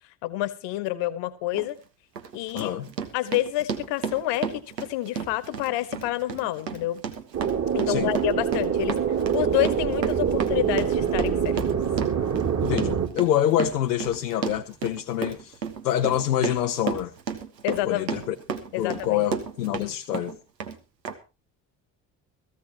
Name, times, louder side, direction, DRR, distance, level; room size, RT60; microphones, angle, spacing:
voice 1, 0.2-1.8 2.3-2.7 3.1-7.0 7.7-9.0 9.3-12.2 17.6-18.1 18.7-19.3, left 15 dB, 60° left, 1.6 m, -28 dB
Run, 1.5-1.7 2.2-19.9 20.1-20.8 21.0-21.1, right 6 dB, 80° right, 1.4 m, -33 dB
voice 2, 2.5-2.9 7.9-8.1 12.6-15.6 15.8-17.1 17.9-18.3 18.8-20.4, left 11 dB, 75° left, 0.9 m, -26 dB
sound 1, 7.3-13.1, right 8 dB, 35° right, 2.5 m, -25 dB
18.0 x 15.0 x 3.0 m
figure-of-eight pair, 45°, 48 cm